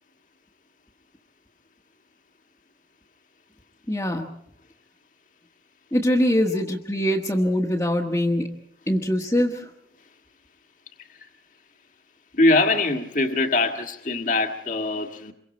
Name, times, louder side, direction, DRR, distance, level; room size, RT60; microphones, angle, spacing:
voice 1, 3.9-4.3 5.9-8.6 8.9-9.7, equal, 15° left, -3 dB, 1.4 m, -23 dB
voice 2, 12.3-15.3, left 2 dB, 45° left, 4 dB, 1.6 m, -22 dB
27.0 x 23.5 x 4.3 m, 0.70 s
head